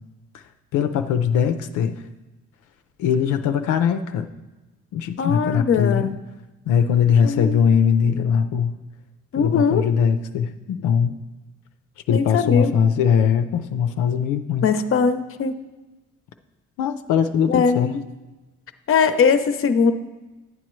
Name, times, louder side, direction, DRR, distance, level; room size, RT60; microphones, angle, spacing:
voice 1, 0.7-2.0 3.0-4.3 4.9-6.1 6.7-8.7 9.3-11.1 12.1-14.7 16.8-17.9, left 7 dB, 85° left, 7 dB, 0.6 m, -20 dB
voice 2, 5.2-6.2 7.2-7.6 9.3-9.9 12.1-12.7 14.6-15.5 17.5-18.0 18.9-19.9, left 6 dB, 45° left, 9 dB, 0.7 m, -20 dB
11.0 x 8.7 x 3.1 m, 1.1 s
cardioid pair, 90°, 30 cm